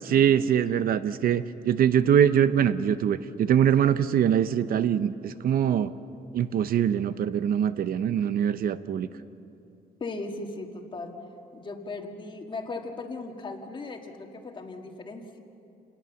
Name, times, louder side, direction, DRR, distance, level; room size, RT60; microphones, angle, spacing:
voice 1, 0.0-5.9 6.3-9.1, right 9 dB, 60° right, 13 dB, 0.7 m, -23 dB
voice 2, 10.0-11.1 11.5-15.4, left 3 dB, 30° left, 4 dB, 1.7 m, -37 dB
28.0 x 20.0 x 7.1 m, 2.7 s
cardioid pair, 170°, 17 cm